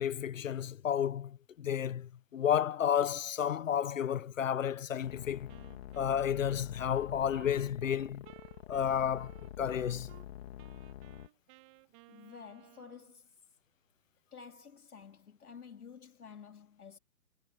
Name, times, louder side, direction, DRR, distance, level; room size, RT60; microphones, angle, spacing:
voice 1, 0.0-5.5 6.0-8.2 8.7-9.3 9.6-10.1, left 9 dB, 60° left, 1.1 m, -31 dB
sound 1, 5.0-11.3, left 11 dB, 45° left, 3.1 m, -47 dB
Wind instrument woodwind instrument, 5.5-10.3 10.6-13.2, right 25 dB, 20° right, 1.5 m, -58 dB
voice 2, 12.1-13.3 14.3-17.0, left 6 dB, 80° left, 3.3 m, -51 dB
hypercardioid pair, 145°, 44 cm